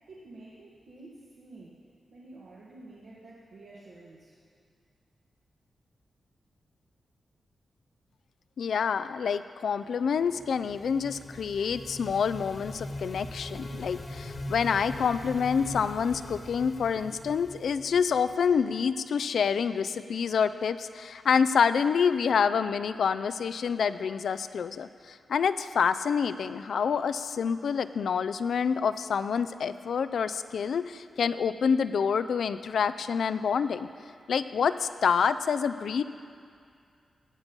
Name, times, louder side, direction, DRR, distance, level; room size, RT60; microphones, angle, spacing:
voice 1, 0.1-1.8 2.1-4.4, right 2 dB, 65° right, -6 dB, 1.7 m, -49 dB
voice 2, 8.6-33.9 34.3-36.0, left 6 dB, 70° left, 12 dB, 0.4 m, -27 dB
sound 1, 10.1-18.8, left 1 dB, 35° left, 1.2 m, -41 dB
18.0 x 8.7 x 5.3 m, 2.3 s
wide cardioid pair, 160°, 0 cm